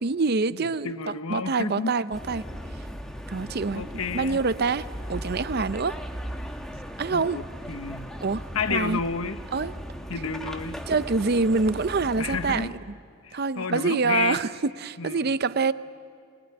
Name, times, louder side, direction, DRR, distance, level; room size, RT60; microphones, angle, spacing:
voice 1, 0.0-2.4 2.8-2.9 3.3-3.8 4.1-6.0 7.0-7.4 8.2-9.0 9.5-9.7 10.9-12.8 13.3-14.5 14.8-15.7, right 4 dB, 45° right, 15 dB, 0.5 m, -26 dB
voice 2, 0.8-1.9 3.4-4.4 7.1-8.1 8.5-9.4 10.1-10.8 12.2-12.7 13.2-14.4 15.0-15.3, left 5 dB, 75° left, 11 dB, 1.0 m, -31 dB
sound 1, 2.1-12.7, equal, 5° left, 1.3 m, -37 dB
24.0 x 20.5 x 9.7 m, 2.2 s
head